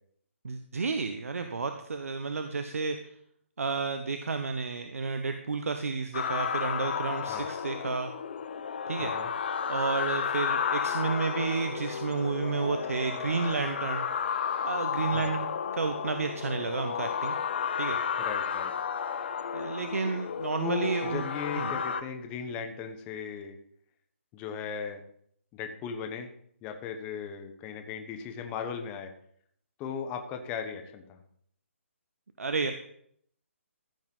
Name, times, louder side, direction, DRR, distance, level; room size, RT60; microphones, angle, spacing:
voice 1, 0.4-3.0 3.6-8.1 8.9-9.1 9.7-14.1 14.6-15.5 15.8-17.3 17.8-18.0 19.5-21.2 21.5-21.8 32.4-32.7, right 4 dB, 85° right, 7 dB, 1.1 m, -31 dB
sound 1, 6.1-22.0, left 7 dB, 50° left, 0.8 m, -32 dB
voice 2, 9.0-9.3 15.1-15.3 18.2-18.7 20.6-23.6 24.3-25.0 25.5-26.3 26.6-29.1 29.8-31.2, left 6 dB, 15° left, 6 dB, 1.1 m, -37 dB
14.5 x 5.6 x 5.5 m, 0.65 s
hypercardioid pair, 160°, 7 cm